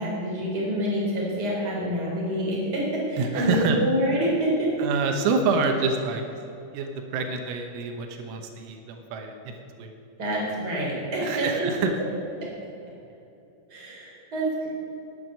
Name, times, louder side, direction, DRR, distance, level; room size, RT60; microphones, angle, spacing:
voice 1, 0.0-4.7 10.2-11.8 12.4-12.5 13.7-14.7, equal, 20° right, -4 dB, 3.7 m, -27 dB
voice 2, 3.2-3.8 4.8-6.2 6.7-9.5 9.8-9.9 11.2-11.9, right 4 dB, 85° right, 5 dB, 3.8 m, -27 dB
11.5 x 9.4 x 9.3 m, 2.9 s
omnidirectional pair, 5.8 m